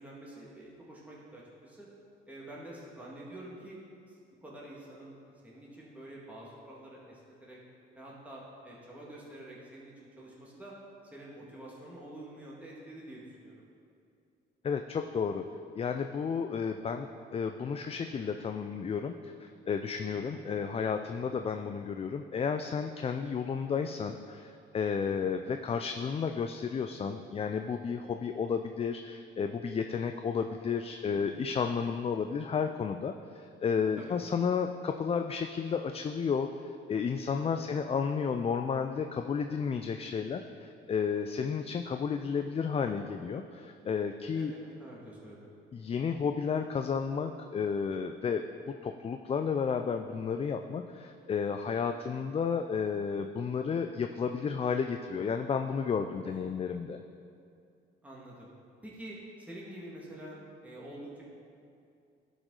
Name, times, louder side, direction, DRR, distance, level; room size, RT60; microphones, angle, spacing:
voice 1, 0.0-1.9 2.3-3.8 4.1-5.2 5.4-7.6 8.0-10.7 11.1-13.6 20.1-20.4 25.1-25.4 31.2-31.5 34.0-34.2 37.4-37.8 44.4-45.5 56.3-56.5 58.0-58.5 58.8-61.2, right 1 dB, 5° right, -6 dB, 1.8 m, -47 dB
voice 2, 14.6-15.4 15.8-36.5 36.9-44.5 45.7-57.0, left 6 dB, 30° left, 6 dB, 0.3 m, -32 dB
11.5 x 5.0 x 3.8 m, 2.4 s
cardioid pair, 90°, 20 cm